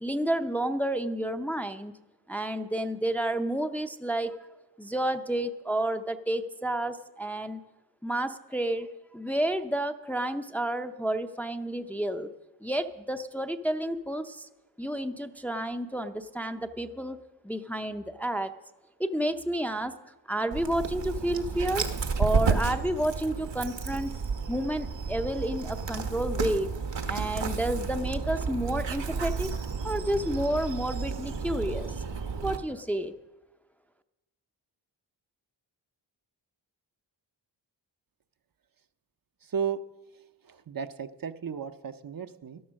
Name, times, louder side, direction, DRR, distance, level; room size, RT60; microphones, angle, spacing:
voice 1, 0.0-1.9 2.3-4.4 4.8-7.6 8.0-12.3 12.6-14.5 14.8-18.5 19.0-20.0 20.3-21.9 22.2-24.1 24.5-26.7 27.1-29.5 29.8-32.0 32.4-33.1, right 1 dB, 5° left, 7 dB, 0.5 m, -30 dB
Dog, 20.5-32.6, right 5 dB, 70° right, 1.2 m, -31 dB
voice 2, 39.4-39.8 40.5-42.6, right 7 dB, 50° right, 10 dB, 0.7 m, -34 dB
12.5 x 12.0 x 6.3 m, 1.1 s
wide cardioid pair, 100°, 44 cm